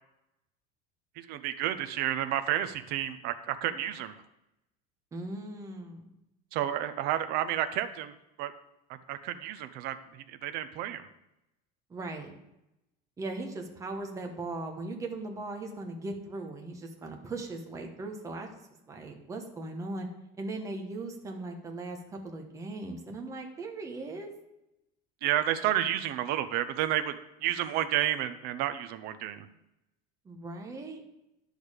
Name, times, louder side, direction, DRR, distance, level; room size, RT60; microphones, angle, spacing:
voice 1, 1.2-4.2 6.5-8.1 8.4-8.5 9.1-11.1 25.2-27.1 27.4-29.5, right 12 dB, 50° right, 10 dB, 0.7 m, -31 dB
voice 2, 5.1-6.1 11.9-12.3 13.2-18.5 18.9-20.1 20.4-24.3 30.2-31.0, right 2 dB, 15° right, 2 dB, 1.1 m, -38 dB
10.5 x 6.5 x 5.1 m, 0.89 s
cardioid pair, 170°, 21 cm